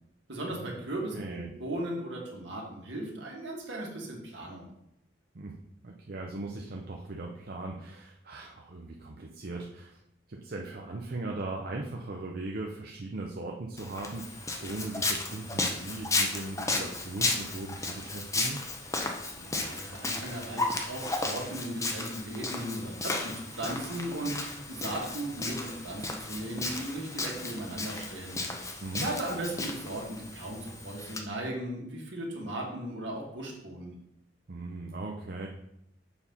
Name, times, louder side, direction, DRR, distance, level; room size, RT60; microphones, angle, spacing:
voice 1, 0.3-4.7 19.3-28.6 29.0-33.9, right 1 dB, 70° right, -1 dB, 2.0 m, -37 dB
voice 2, 1.1-1.5 5.3-5.6 5.8-10.0 10.3-18.6 28.8-29.1 34.5-35.5, right 2 dB, 50° right, 0 dB, 0.6 m, -38 dB
Walk footsteps, 13.8-31.2, left 2 dB, 15° left, 0.7 m, -34 dB
7.0 x 4.2 x 5.5 m, 0.80 s
head